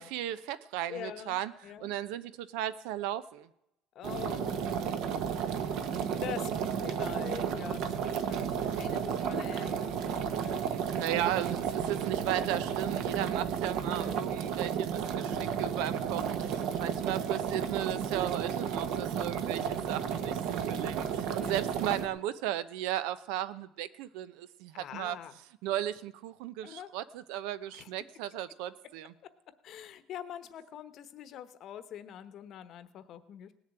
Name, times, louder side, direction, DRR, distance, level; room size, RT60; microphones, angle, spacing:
voice 1, 0.0-1.5 1.8-3.5 10.7-25.2 25.6-29.1, right 12 dB, 80° right, 15 dB, 0.8 m, -36 dB
voice 2, 0.9-1.9 3.9-5.4 5.8-5.9 6.2-10.7 13.1-13.2 13.9-14.2 21.2-21.7 24.7-25.4 26.6-26.9 27.7-27.9 29.6-33.5, left 10 dB, 40° left, 13 dB, 1.1 m, -45 dB
sound 1, 4.0-22.1, right 7 dB, 55° right, 1.3 m, -33 dB
18.0 x 7.2 x 9.0 m, 0.81 s
cardioid pair, 170°, 0 cm